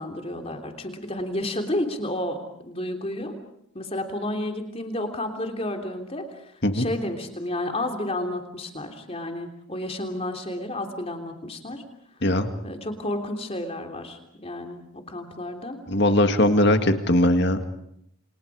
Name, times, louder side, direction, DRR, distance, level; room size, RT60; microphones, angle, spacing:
voice 1, 0.0-3.4 3.7-6.3 6.7-11.8 12.6-15.8, left 1 dB, 30° left, 4 dB, 3.3 m, -31 dB
voice 2, 15.9-17.6, left 1 dB, 50° left, 7 dB, 2.1 m, -20 dB
29.5 x 27.5 x 5.0 m, 0.74 s
head